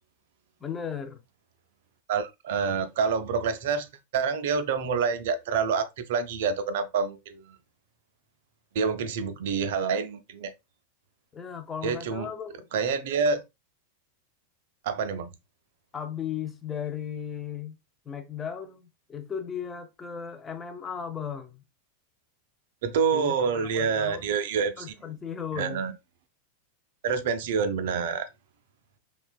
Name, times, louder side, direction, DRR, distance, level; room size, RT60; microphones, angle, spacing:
voice 1, 0.6-1.2 11.3-12.7 15.9-17.8 18.1-21.6 23.1-24.3 24.8-25.8, left 7 dB, 20° left, 0.4 m, -36 dB
voice 2, 2.1-3.9 4.1-7.4 8.7-10.5 11.8-12.3 12.7-13.4 14.8-15.3 22.8-24.9 25.6-25.9 27.0-28.3, right 5 dB, 55° right, 0.4 m, -27 dB
3.0 x 2.2 x 2.3 m
figure-of-eight pair, 90°, 0 cm